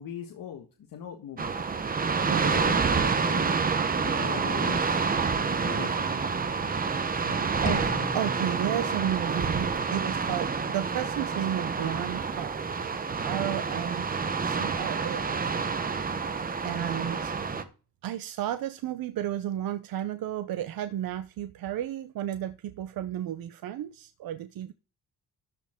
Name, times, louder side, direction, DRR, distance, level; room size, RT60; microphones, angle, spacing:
voice 1, 0.0-1.5 2.4-3.6 3.9-6.3 7.3-7.5, left 9 dB, 75° left, 1.4 m, -40 dB
sound 1, 1.4-17.6, right 5 dB, 25° right, 0.8 m, -28 dB
voice 2, 7.6-12.6 13.2-14.1 14.4-15.7 16.6-17.3 18.0-24.7, right 11 dB, 85° right, 0.6 m, -33 dB
sound 2, 7.7-9.6, left 3 dB, 20° left, 1.5 m, -38 dB
13.0 x 6.5 x 3.6 m
wide cardioid pair, 175°, 34 cm